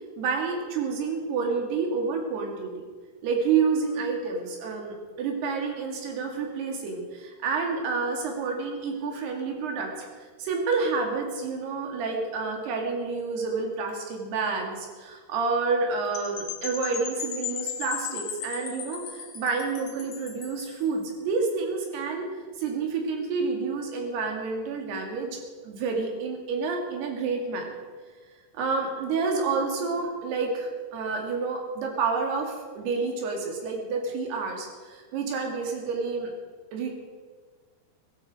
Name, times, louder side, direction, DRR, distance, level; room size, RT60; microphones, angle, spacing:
voice 1, 0.2-2.8 3.2-10.1 10.4-22.3 22.6-25.4 25.6-27.7 28.5-36.3 36.7-36.9, right 4 dB, 85° right, 2 dB, 4.3 m, -29 dB
Percussion / Wind chime, 16.1-20.8, left 8 dB, 60° left, 2.3 m, -36 dB
17.0 x 15.0 x 4.9 m, 1.5 s
omnidirectional pair, 4.6 m